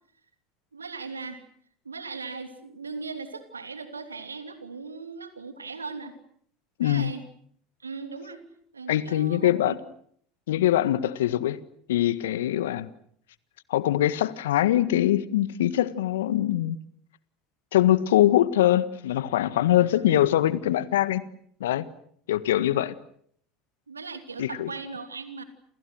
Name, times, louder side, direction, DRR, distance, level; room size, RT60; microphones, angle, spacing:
voice 1, 0.7-1.4 1.8-6.1 6.8-7.2 7.8-8.4 8.7-9.8 20.1-20.2 23.9-25.4, right 4 dB, 90° right, 9 dB, 3.1 m, -38 dB
voice 2, 6.8-7.1 8.9-9.7 10.5-11.6 11.9-12.9 13.7-16.8 17.7-21.2 21.6-21.9 22.3-22.9 24.4-24.7, left 13 dB, 75° left, 16 dB, 1.6 m, -23 dB
29.5 x 29.0 x 6.4 m, 0.63 s
figure-of-eight pair, 70°, 0 cm